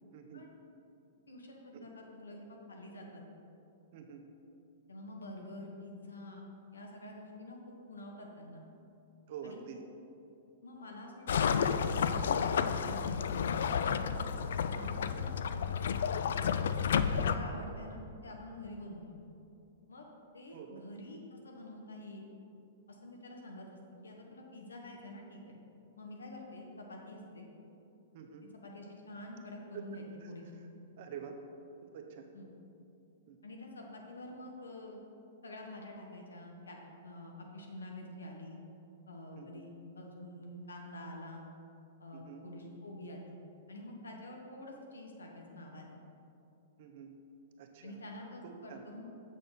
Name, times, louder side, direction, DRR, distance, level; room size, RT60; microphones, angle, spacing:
voice 1, 0.1-0.5 1.7-1.9 3.9-4.2 9.3-9.8 20.5-20.8 28.1-28.5 29.7-29.8 30.2-30.3 30.6-30.7 31.0-31.4 31.8-32.3 33.3-33.4 39.3-39.7 42.1-42.4 46.8-47.1 47.6-48.0 48.4-48.8, right 7 dB, 55° right, 4 dB, 0.9 m, -47 dB
voice 2, 1.3-3.3 4.9-8.6 9.4-9.6 10.6-13.4 13.9-14.2 14.7-15.6 15.9-16.6 17.0-19.1 19.9-20.1 20.3-22.2 22.9-25.6 26.0-27.5 28.6-30.4 32.3-32.5 33.4-35.0 35.4-36.8 37.0-38.6 39.1-41.4 42.0-43.3 43.7-45.9 47.8-49.0, left 1 dB, 85° left, 0 dB, 1.3 m, -47 dB
sound 1, 11.3-17.4, left 7 dB, 70° left, 0.3 m, -31 dB
7.3 x 6.4 x 4.2 m, 2.8 s
hypercardioid pair, 115°, 0 cm